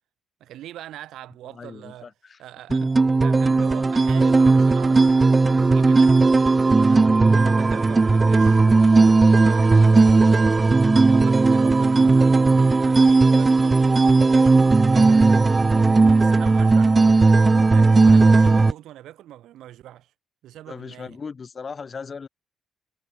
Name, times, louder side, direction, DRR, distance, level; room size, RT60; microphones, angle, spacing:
voice 1, 0.4-2.1 2.4-2.9 3.2-8.9 9.4-12.5 12.8-14.6 14.9-17.1 17.7-20.1 20.4-21.2, right 13 dB, 80° right, 5.0 m, -42 dB
voice 2, 1.5-2.4 2.7-2.9 20.7-22.3, left 5 dB, 40° left, 4.1 m, -38 dB
sound 1, 2.7-18.7, right 3 dB, 25° right, 0.6 m, -16 dB
cardioid pair, 90°, 0 cm